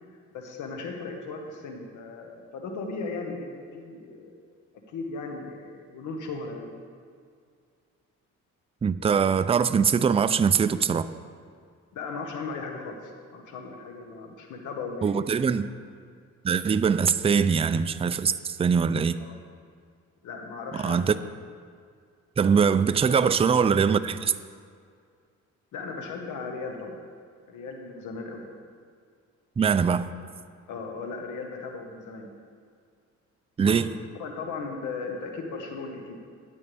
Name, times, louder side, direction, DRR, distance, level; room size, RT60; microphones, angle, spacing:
voice 1, 0.3-4.3 4.9-6.7 11.9-15.2 19.2-19.3 20.2-21.0 23.2-23.3 25.7-27.0 27.5-28.4 30.7-32.3 33.6-33.8 34.2-36.2, left 4 dB, 85° left, 1.5 m, -37 dB
voice 2, 8.8-11.1 15.0-15.7 16.4-19.2 20.7-21.1 22.4-24.4 29.6-30.1 33.6-33.9, right 6 dB, 20° right, 0.4 m, -22 dB
14.0 x 9.5 x 3.4 m
cardioid pair, 90°, 30 cm